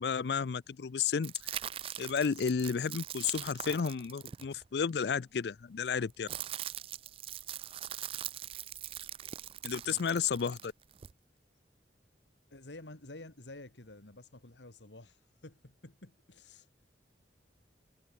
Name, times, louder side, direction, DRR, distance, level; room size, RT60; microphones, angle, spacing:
voice 1, 0.0-1.6 2.0-6.3 9.6-10.7, left 6 dB, 65° left, 0.4 m, -32 dB
sound 1, 1.2-5.0 5.9-11.1, right 11 dB, 30° right, 0.3 m, -42 dB
voice 2, 12.5-16.7, left 2 dB, 90° left, 2.5 m, -50 dB
head